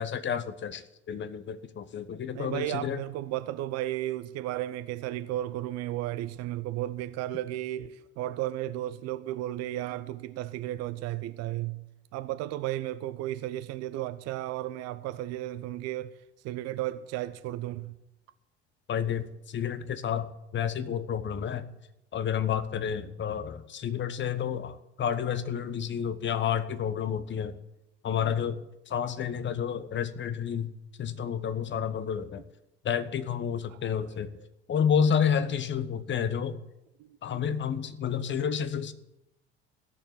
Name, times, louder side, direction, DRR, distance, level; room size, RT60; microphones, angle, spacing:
voice 1, 0.0-3.0 18.9-21.7 22.1-27.6 28.0-30.7 31.0-32.4 32.8-34.3 34.7-36.6 37.2-38.9, left 8 dB, 35° left, 1.1 m, -30 dB
voice 2, 2.3-11.8 12.1-16.2 16.4-17.9 28.2-28.3 33.7-34.2 37.0-37.5, right 14 dB, 50° right, 0.7 m, -34 dB
15.5 x 6.8 x 9.6 m
figure-of-eight pair, 60°, 34 cm